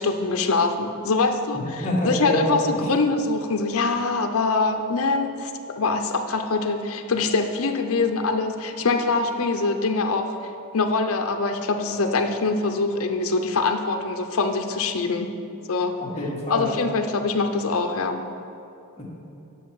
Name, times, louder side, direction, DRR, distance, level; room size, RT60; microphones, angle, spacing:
voice 1, 0.0-5.5 5.8-10.3 10.7-15.3 15.7-15.9 16.5-18.2, left 3 dB, 70° left, 5 dB, 0.6 m, -24 dB
voice 2, 1.5-2.9 16.0-16.7 19.0-19.1, equal, 30° left, -5 dB, 1.7 m, -26 dB
8.9 x 6.4 x 4.7 m, 2.7 s
head